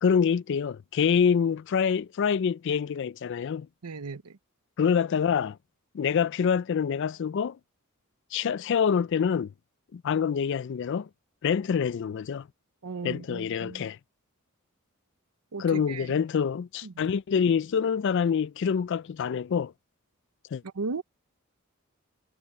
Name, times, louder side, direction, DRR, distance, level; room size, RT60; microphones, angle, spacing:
voice 1, 0.0-3.7 4.8-5.6 5.9-7.6 8.3-9.5 9.9-11.1 11.4-12.5 13.0-14.0 15.6-19.7 20.5-20.6, left 7 dB, 55° left, 0.3 m, -26 dB
voice 2, 3.8-4.4 12.8-13.9 15.5-16.1 16.8-17.1 20.6-21.0, right 4 dB, 90° right, 0.7 m, -36 dB
head